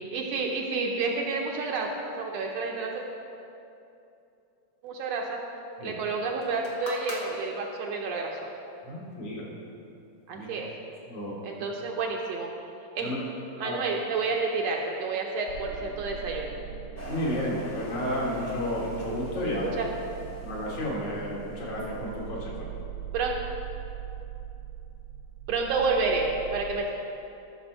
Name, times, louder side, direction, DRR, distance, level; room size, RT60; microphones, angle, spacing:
voice 1, 0.1-1.9 2.2-3.1 4.8-5.4 5.8-8.4 10.3-10.7 11.4-12.5 12.9-13.1 13.6-16.5 19.8-19.9 23.1-23.3 25.5-26.9, right 4 dB, 75° right, 1 dB, 1.7 m, -29 dB
sound 1, 6.4-8.2 9.1-9.2, left 2 dB, 85° left, 0.8 m, -41 dB
voice 2, 8.8-9.4 10.3-10.5 11.1-11.4 13.0-13.2 13.6-13.8 17.1-19.6 20.4-22.7, left 1 dB, 70° left, -5 dB, 3.1 m, -32 dB
sound 2, 15.5-26.8, right 10 dB, 90° right, 2.9 m, -41 dB
sound 3, 17.0-21.9, equal, 30° left, 0.7 m, -43 dB
13.0 x 6.1 x 4.4 m, 2.7 s
omnidirectional pair, 3.3 m